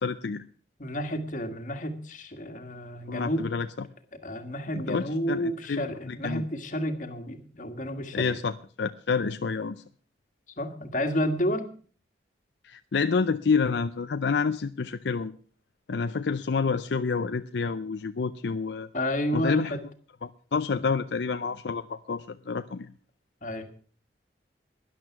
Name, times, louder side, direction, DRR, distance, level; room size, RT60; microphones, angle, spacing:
voice 1, 0.0-0.4 3.1-3.7 4.9-6.4 8.1-9.8 12.6-15.3 15.9-18.9 19.3-19.8 20.2-22.9, left 5 dB, 75° left, 10 dB, 0.5 m, -28 dB
voice 2, 0.8-3.5 4.2-8.3 10.6-11.7 18.9-19.8 20.7-20.8 23.4-23.7, equal, 45° left, 7 dB, 1.7 m, -30 dB
12.5 x 11.0 x 5.9 m, 0.43 s
head